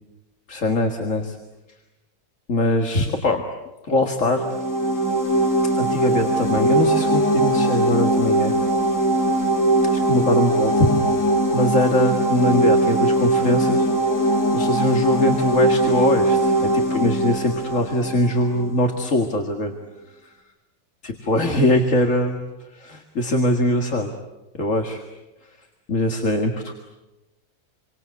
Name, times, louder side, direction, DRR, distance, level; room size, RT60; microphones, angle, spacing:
voice 1, 0.5-1.4 2.5-3.4 3.8-4.4 5.8-8.5 9.8-11.0 11.5-13.9 14.2-19.7 21.0-22.4 22.7-24.1 24.6-25.0 25.9-26.7, left 1 dB, 45° left, 4 dB, 2.2 m, -22 dB
sound 1, 4.2-18.8, right 1 dB, 10° left, 2.4 m, -20 dB
29.0 x 24.5 x 8.3 m, 1.0 s
omnidirectional pair, 1.9 m